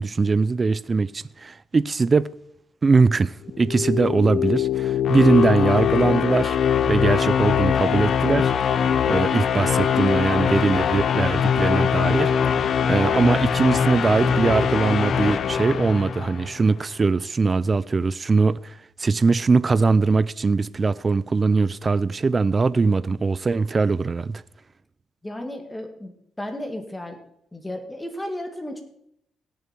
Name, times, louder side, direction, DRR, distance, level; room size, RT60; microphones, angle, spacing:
voice 1, 0.0-2.3 2.8-6.6 6.9-8.5 9.1-24.4, right 4 dB, 30° right, 0.4 m, -21 dB
sound 1, 3.5-16.6, left 7 dB, 60° left, 0.6 m, -22 dB
voice 2, 25.2-27.2 27.5-28.8, left 1 dB, 15° left, 2.2 m, -34 dB
18.0 x 7.0 x 4.5 m
cardioid pair, 90°, 0 cm